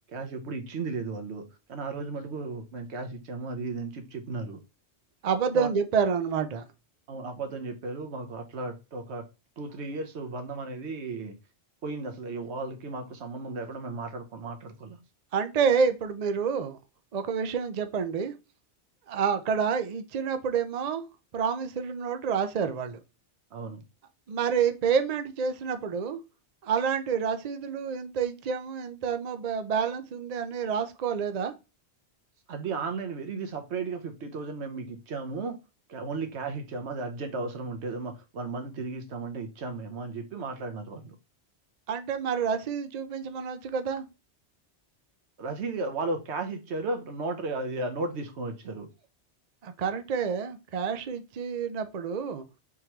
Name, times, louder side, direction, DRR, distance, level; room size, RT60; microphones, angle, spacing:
voice 1, 0.1-1.4 1.7-4.6 5.5-5.7 7.1-9.3 9.6-11.4 11.8-15.0 23.5-23.8 32.5-35.6 35.9-41.1 45.4-48.9, right 3 dB, 70° right, 1.1 m, -35 dB
voice 2, 5.2-6.6 15.3-16.8 17.1-18.3 19.1-21.0 21.3-23.0 24.3-26.2 26.6-31.5 41.9-44.1 49.6-52.5, right 6 dB, 50° right, 0.5 m, -28 dB
3.6 x 3.0 x 4.4 m
omnidirectional pair, 1.2 m